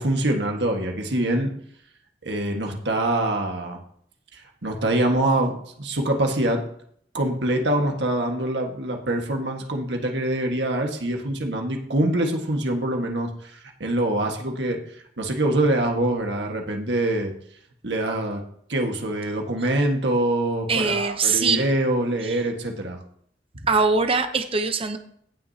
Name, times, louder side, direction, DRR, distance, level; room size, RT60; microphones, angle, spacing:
voice 1, 0.0-1.5 2.2-3.8 4.3-6.6 7.1-17.3 17.8-18.4 18.7-23.0, right 1 dB, 75° right, 2 dB, 1.6 m, -24 dB
voice 2, 20.7-21.6 22.2-22.4 23.7-25.0, right 4 dB, 30° right, 7 dB, 0.8 m, -22 dB
17.5 x 6.2 x 2.8 m, 0.64 s
head